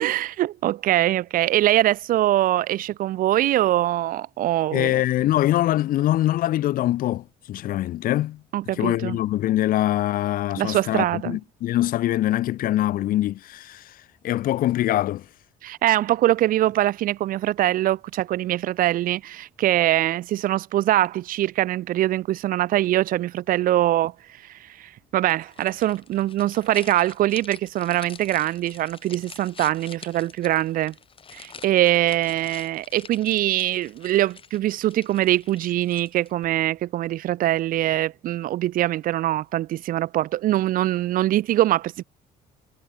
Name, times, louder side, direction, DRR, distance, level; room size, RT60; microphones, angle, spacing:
voice 1, 0.0-5.0 8.5-9.2 10.6-11.4 15.6-24.1 24.4-30.9 31.3-42.0, right 14 dB, 55° right, 0.4 m, -23 dB
voice 2, 4.7-8.4 8.8-15.3, left 14 dB, 55° left, 0.5 m, -23 dB
sound 1, 25.3-36.5, left 6 dB, 30° left, 1.6 m, -46 dB
cardioid pair, 110°, 17 cm